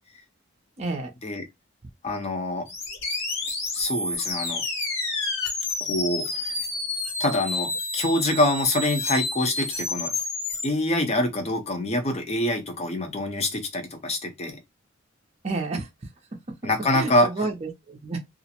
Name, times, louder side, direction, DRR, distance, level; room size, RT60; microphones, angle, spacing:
voice 1, 0.8-1.1 15.4-15.9 16.9-18.2, right 3 dB, 30° right, 0.5 m, -30 dB
voice 2, 2.0-2.7 3.5-4.6 5.8-6.5 7.2-10.1 10.6-14.6 16.6-17.3, left 1 dB, 30° left, 0.6 m, -25 dB
sound 1, 2.7-10.7, left 3 dB, 75° left, 1.0 m, -30 dB
2.4 x 2.0 x 2.8 m
head